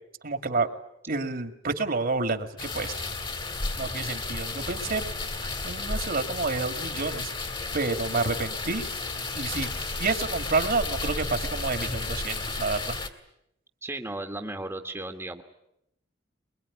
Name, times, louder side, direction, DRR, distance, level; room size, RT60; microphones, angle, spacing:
voice 1, 0.2-0.7 1.1-3.0 3.8-5.0 5.4-7.3 7.7-8.9 9.3-9.7 10.0-13.0, right 3 dB, 55° right, 8 dB, 2.1 m, -29 dB
sound 1, 2.6-13.1, left 3 dB, 25° left, 2.1 m, -33 dB
voice 2, 13.8-15.4, right 2 dB, 15° right, 4 dB, 1.5 m, -35 dB
23.0 x 22.5 x 9.8 m, 0.79 s
head